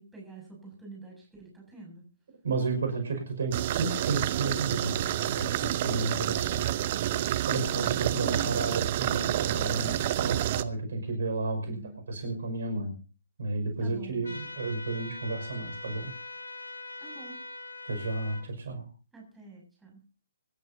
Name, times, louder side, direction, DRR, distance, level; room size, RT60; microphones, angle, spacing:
voice 1, 0.0-2.0 11.6-12.0 13.8-14.2 17.0-17.4 19.1-20.0, right 3 dB, 5° right, -1 dB, 6.9 m, -48 dB
voice 2, 2.4-6.6 7.5-11.8 12.1-12.9 13.4-16.1 17.9-18.9, right 3 dB, 55° right, 5 dB, 5.6 m, -32 dB
sound 1, 3.5-10.6, right 12 dB, 35° right, 0.8 m, -29 dB
sound 2, 14.2-18.4, left 2 dB, 70° left, 5.1 m, -42 dB
25.5 x 12.5 x 2.8 m, 0.37 s
figure-of-eight pair, 130°, 0 cm